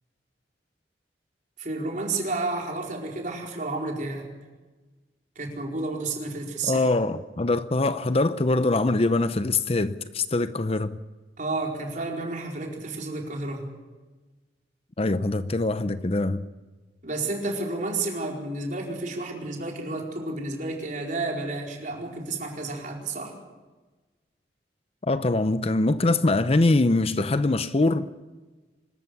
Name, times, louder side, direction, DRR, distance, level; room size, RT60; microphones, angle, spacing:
voice 1, 1.6-4.3 5.3-6.9 11.4-13.7 17.0-23.4, right 2 dB, 45° right, 4.6 m, -31 dB
voice 2, 6.6-11.0 15.0-16.4 25.0-28.1, left 2 dB, 35° left, 0.7 m, -23 dB
25.0 x 14.0 x 9.7 m
head